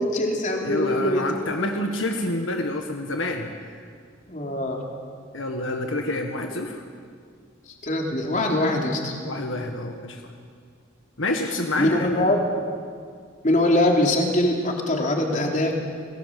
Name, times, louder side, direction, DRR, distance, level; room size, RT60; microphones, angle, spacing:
voice 1, 0.0-1.4 4.3-4.8 7.8-9.2 11.8-12.4 13.4-15.7, left 1 dB, 40° left, 1 dB, 3.5 m, -22 dB
voice 2, 0.6-3.5 5.3-6.8 9.2-10.3 11.2-12.3, left 2 dB, 80° left, 4 dB, 1.7 m, -28 dB
29.0 x 19.0 x 7.7 m, 2.1 s
head